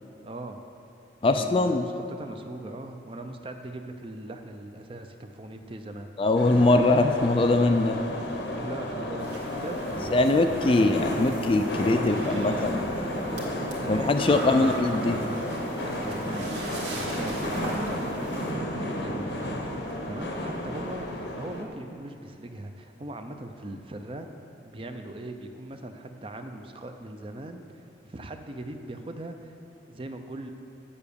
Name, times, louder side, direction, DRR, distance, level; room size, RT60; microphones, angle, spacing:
voice 1, 0.2-0.6 1.3-6.1 8.5-10.5 11.8-12.6 13.2-14.8 15.8-19.4 20.0-21.1 21.4-24.3 24.6-27.6 28.0-29.6 29.9-30.5, right 1 dB, 30° right, 6 dB, 0.5 m, -40 dB
voice 2, 1.2-1.8 6.2-8.0 10.1-12.8 13.9-15.2, left 2 dB, 30° left, 7 dB, 0.3 m, -22 dB
sound 1, 6.3-21.6, left 1 dB, 75° left, 1.1 m, -32 dB
sound 2, 9.2-18.5, right 1 dB, 75° right, 1.9 m, -39 dB
7.8 x 7.1 x 6.9 m, 2.7 s
head